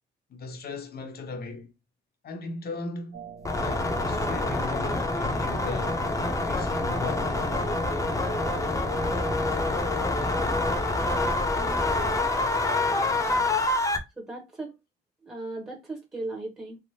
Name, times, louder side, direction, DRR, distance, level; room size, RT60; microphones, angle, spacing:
voice 1, 0.3-1.7 2.2-6.1 6.5-7.4, left 3 dB, 50° left, 0.9 m, -38 dB
sound 1, 3.1-9.4, right 8 dB, 60° right, 1.0 m, -43 dB
sound 2, 3.4-14.0, left 2 dB, 15° left, 0.7 m, -26 dB
voice 2, 11.5-12.2 14.2-14.7 15.2-16.8, right 2 dB, 10° right, 0.9 m, -37 dB
3.5 x 2.0 x 2.7 m
cardioid pair, 90°, 20 cm